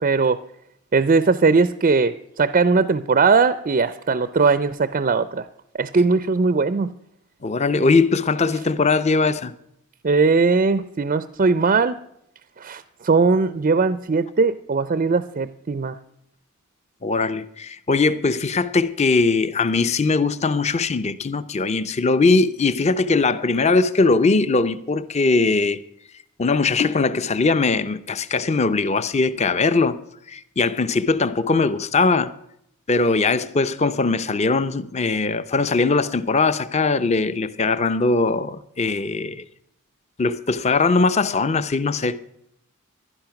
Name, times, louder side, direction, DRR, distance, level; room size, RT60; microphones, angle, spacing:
voice 1, 0.0-0.4 0.9-5.5 5.7-6.9 10.0-12.0 12.6-16.0, right 4 dB, 35° right, 0.4 m, -19 dB
voice 2, 7.4-9.5 17.0-25.8 26.4-30.0 30.3-32.3 32.9-39.4 40.2-42.2, left 3 dB, 30° left, 0.6 m, -20 dB
15.5 x 11.5 x 5.9 m
head